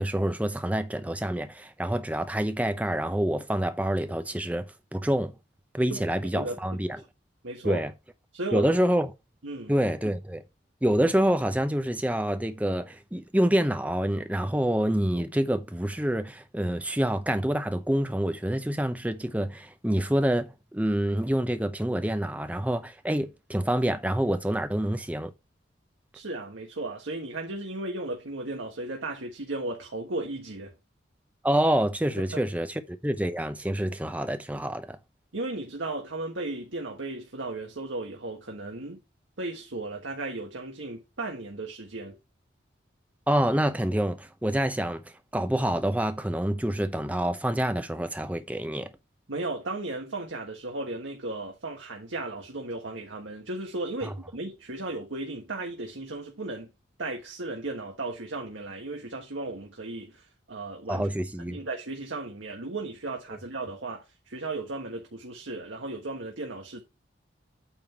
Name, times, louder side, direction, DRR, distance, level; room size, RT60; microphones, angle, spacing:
voice 1, 0.0-5.3 5.7-7.0 7.6-7.9 8.5-9.1 9.7-10.4 10.8-25.3 31.4-35.0 43.3-45.0 45.3-48.9 54.0-54.1 60.9-61.6, right 1 dB, 10° right, 0.7 m, -27 dB
voice 2, 7.4-7.8 8.3-8.7 9.4-9.7 26.1-30.7 32.3-32.4 35.3-39.0 39.4-42.1 49.3-56.7 57.0-61.1 61.5-66.8, right 2 dB, 85° right, 1.4 m, -35 dB
8.8 x 3.8 x 5.8 m
head